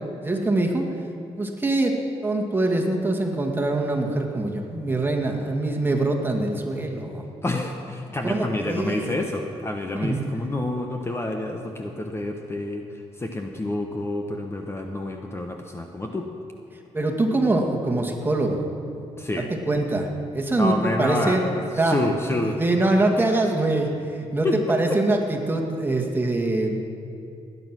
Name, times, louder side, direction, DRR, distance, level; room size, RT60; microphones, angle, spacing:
voice 1, 0.2-0.9 1.4-2.0 2.2-7.2 8.2-9.1 9.9-10.2 16.9-18.6 19.7-21.4 21.8-22.0 22.6-26.8, right 2 dB, 20° right, 2 dB, 2.0 m, -23 dB
voice 2, 7.4-16.3 19.2-19.5 20.6-22.6 24.4-24.8, left 2 dB, 20° left, 3 dB, 1.1 m, -28 dB
18.0 x 9.7 x 6.2 m, 2.6 s
cardioid pair, 90°, 12 cm